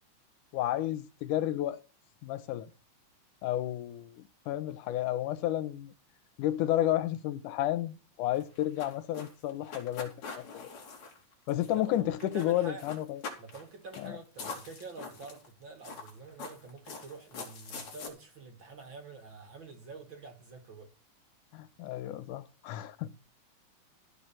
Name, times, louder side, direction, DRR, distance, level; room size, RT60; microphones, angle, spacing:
voice 1, 0.5-1.8 2.2-2.7 3.4-5.9 6.4-10.5 11.5-13.2 14.0-14.2 21.5-23.1, left 13 dB, 90° left, 2.4 m, -32 dB
sound 1, 8.3-11.9 12.2-12.5 12.8-13.6 13.9-14.1 14.4-15.5 15.8-18.1, left 4 dB, 70° left, 4.2 m, -43 dB
voice 2, 11.7-12.9 13.4-20.9, right 4 dB, 45° right, 2.5 m, -47 dB
15.0 x 5.5 x 7.5 m
omnidirectional pair, 3.5 m